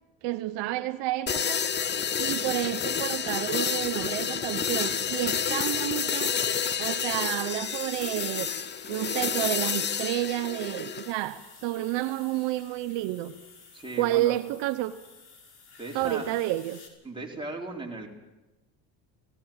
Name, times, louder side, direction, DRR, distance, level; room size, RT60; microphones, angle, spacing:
voice 1, 0.2-1.6 2.2-6.4 6.8-8.5 8.9-13.3 14.0-14.9 15.9-16.8, right 15 dB, 70° right, 10 dB, 1.0 m, -30 dB
sound 1, 1.3-11.1, left 7 dB, 25° left, 0.8 m, -29 dB
sound 2, 7.6-16.9, left 5 dB, 55° left, 5.2 m, -51 dB
voice 2, 13.7-14.3 15.8-16.4 17.0-18.1, right 2 dB, 10° right, -1 dB, 4.4 m, -37 dB
17.0 x 17.0 x 8.8 m, 1.1 s
supercardioid pair, 95°, 45 cm